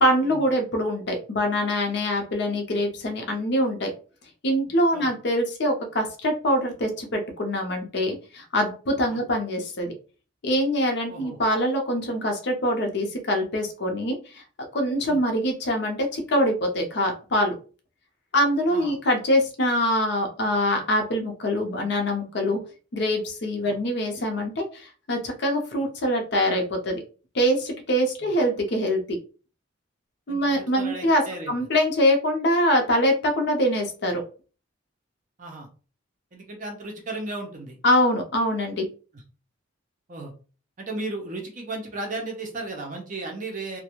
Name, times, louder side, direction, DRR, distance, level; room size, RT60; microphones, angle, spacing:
voice 1, 0.0-3.9 4.4-9.9 10.4-14.4 14.7-17.5 18.3-22.6 22.9-27.0 27.3-29.0 30.3-34.2 37.8-38.9, equal, 60° left, 3 dB, 0.6 m, -24 dB
voice 2, 30.3-31.5 35.4-35.7 36.3-37.8 40.1-40.3 40.8-43.8, right 2 dB, 40° right, 1 dB, 0.6 m, -35 dB
2.3 x 2.1 x 2.9 m, 0.37 s
head